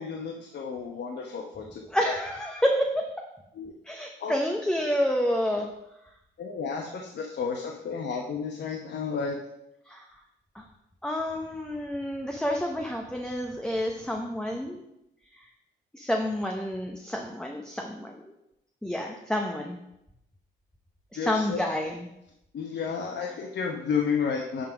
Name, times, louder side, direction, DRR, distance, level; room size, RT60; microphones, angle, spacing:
voice 1, 0.0-1.8 3.6-3.7 4.2-4.3 6.4-9.4 21.2-21.6 22.5-24.7, left 6 dB, 60° left, 1 dB, 1.0 m, -31 dB
voice 2, 1.9-3.0 3.9-5.7 9.9-10.0 10.5-10.6 11.0-14.8 15.3-15.4 15.9-18.2 18.8-19.8 21.1-22.1, equal, 5° left, 2 dB, 0.9 m, -29 dB
10.5 x 3.9 x 5.1 m, 0.84 s
cardioid pair, 90°, 20 cm